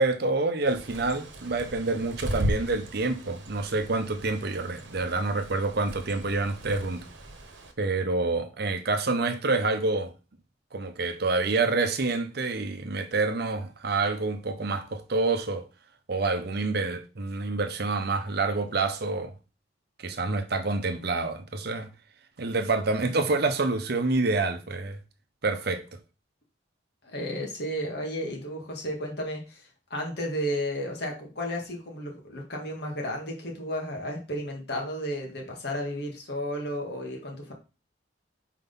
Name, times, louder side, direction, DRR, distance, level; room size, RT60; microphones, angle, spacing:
voice 1, 0.0-7.0 7.8-10.1 10.7-15.6 16.1-19.3 20.0-21.9 22.4-25.0 25.4-25.8, right 3 dB, 55° right, 0.8 m, -27 dB
Bird, 0.6-7.7, equal, 75° right, 1.1 m, -37 dB
voice 2, 27.0-37.5, equal, 60° left, 1.9 m, -33 dB
4.6 x 3.8 x 5.4 m
head